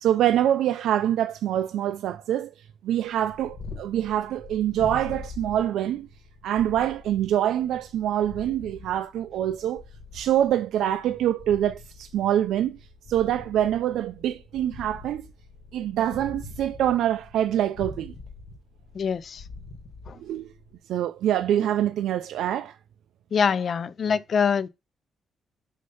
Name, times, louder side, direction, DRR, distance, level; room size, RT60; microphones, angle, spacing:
voice 1, 0.0-2.5 2.8-6.1 6.4-9.8 10.1-12.8 13.1-15.3 15.7-18.1 20.2-20.5 20.9-22.8, right 11 dB, 85° right, 0.3 m, -25 dB
Purr, 3.1-20.8, left 3 dB, 75° left, 1.7 m, -44 dB
voice 2, 18.9-19.4 20.1-20.2 23.3-24.7, left 6 dB, 40° left, 0.3 m, -24 dB
6.4 x 2.7 x 5.5 m
cardioid pair, 165°, 0 cm